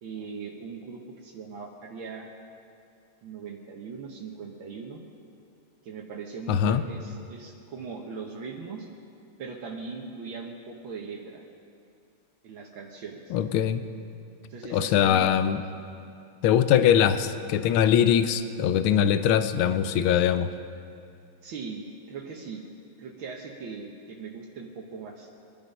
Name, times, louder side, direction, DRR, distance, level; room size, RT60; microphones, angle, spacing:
voice 1, 0.0-2.3 3.2-5.0 5.8-8.9 9.4-11.4 12.4-13.3 14.5-15.3 21.4-22.6 23.0-25.3, right 5 dB, 75° right, 0 dB, 1.9 m, -39 dB
voice 2, 6.5-6.8 13.3-13.8 14.7-15.6 16.4-20.5, left 9 dB, 85° left, 11 dB, 1.5 m, -22 dB
23.0 x 10.5 x 5.5 m, 2.4 s
omnidirectional pair, 2.3 m